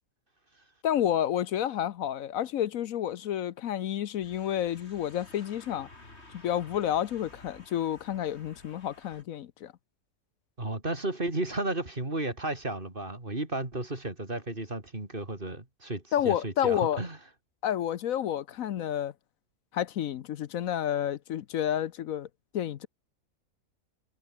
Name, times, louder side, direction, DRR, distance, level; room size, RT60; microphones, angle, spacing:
voice 1, 0.8-5.9 6.4-9.7 16.1-17.0 17.6-19.1 19.7-22.3 22.5-22.9, left 10 dB, 75° left, 1.2 m, -30 dB
sound 1, 4.2-9.2, left 2 dB, 50° left, 4.8 m, -53 dB
voice 2, 10.6-17.2, right 2 dB, 35° right, 4.0 m, -33 dB
omnidirectional pair, 1.5 m